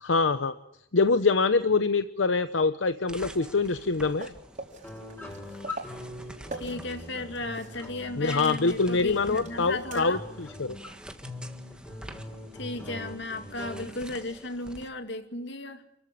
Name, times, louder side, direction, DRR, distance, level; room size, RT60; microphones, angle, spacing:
voice 1, 0.0-0.5 0.9-4.3 8.2-10.8, left 4 dB, 85° left, 11 dB, 0.8 m, -25 dB
sound 1, 3.1-14.9, right 1 dB, 5° right, 1.6 m, -48 dB
sound 2, 3.3-10.3 10.7-10.8 13.3-13.4, right 2 dB, 45° right, 4.3 m, -45 dB
sound 3, 4.8-13.8, left 2 dB, 10° left, 5.4 m, -42 dB
voice 2, 6.5-10.2 12.5-15.8, left 2 dB, 70° left, 7 dB, 2.4 m, -35 dB
28.5 x 14.5 x 10.0 m, 0.79 s
head